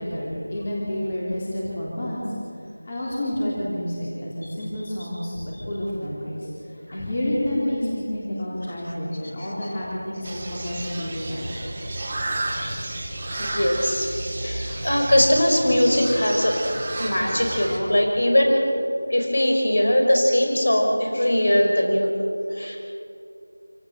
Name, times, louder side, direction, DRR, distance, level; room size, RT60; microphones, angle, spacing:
voice 1, 0.0-2.2 2.9-11.7 12.5-12.8, left 1 dB, 20° left, -6 dB, 3.4 m, -29 dB
sound 1, 10.2-17.8, right 1 dB, 15° right, 2.3 m, -31 dB
voice 2, 13.4-16.6 17.0-18.7 19.1-22.1 22.5-22.8, left 1 dB, 55° left, 2 dB, 5.3 m, -21 dB
26.5 x 17.5 x 8.1 m, 2.6 s
figure-of-eight pair, 175°, 0 cm